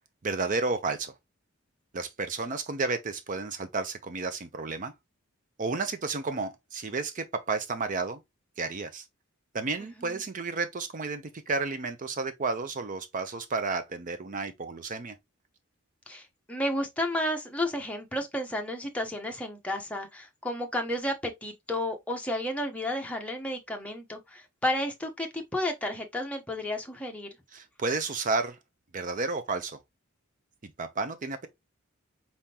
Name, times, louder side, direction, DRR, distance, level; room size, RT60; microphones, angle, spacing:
voice 1, 0.2-1.1 1.9-4.9 5.6-8.2 8.6-9.0 9.5-15.2 27.5-28.6 28.9-29.8 30.6-31.5, right 3 dB, 40° right, 0.5 m, -32 dB
voice 2, 16.1-27.3, left 1 dB, 5° left, 0.9 m, -32 dB
4.2 x 3.7 x 2.8 m
head